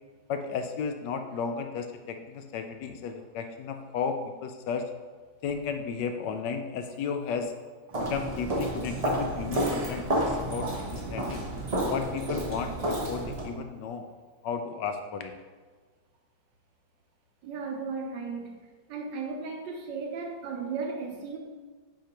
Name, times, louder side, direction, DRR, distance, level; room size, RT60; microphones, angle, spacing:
voice 1, 0.3-4.9 5.4-7.5 8.1-11.4 11.9-14.1 14.4-15.3, left 6 dB, 75° left, 1.2 m, -34 dB
Walk footsteps, 7.9-13.5, right 1 dB, 60° right, 0.4 m, -30 dB
voice 2, 17.4-18.5 18.9-21.4, right 4 dB, 75° right, 1.5 m, -35 dB
7.8 x 5.0 x 2.9 m
omnidirectional pair, 2.0 m